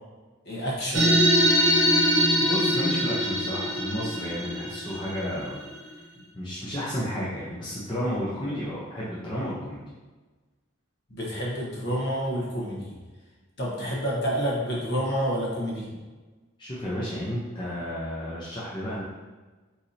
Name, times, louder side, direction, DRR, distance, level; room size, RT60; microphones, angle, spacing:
voice 1, 0.4-1.1 11.1-13.0 13.6-15.9, equal, 50° left, -4 dB, 1.3 m, -28 dB
sound 1, 0.9-5.8, equal, 50° right, 1.0 m, -23 dB
voice 2, 2.4-5.6 6.3-9.8 16.6-19.0, equal, 20° left, -8 dB, 0.7 m, -32 dB
4.6 x 4.1 x 2.7 m, 1.3 s
head